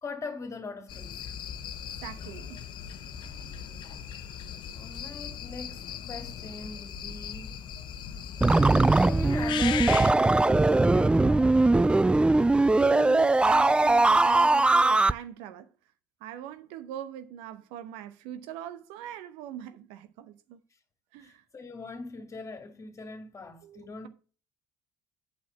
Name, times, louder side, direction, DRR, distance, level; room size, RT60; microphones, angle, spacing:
voice 1, 0.0-1.4 4.7-7.5 9.0-11.6 21.2-24.1, left 4 dB, 30° left, 2.2 m, -41 dB
sound 1, 0.9-10.1, left 8 dB, 55° left, 0.8 m, -38 dB
voice 2, 2.0-2.6 12.8-15.7 16.2-20.6 21.1-21.4 23.6-24.1, right 10 dB, 70° right, 0.8 m, -41 dB
sound 2, 8.4-15.1, right 2 dB, 10° right, 0.3 m, -21 dB
8.5 x 4.4 x 6.8 m
hypercardioid pair, 55°, 10 cm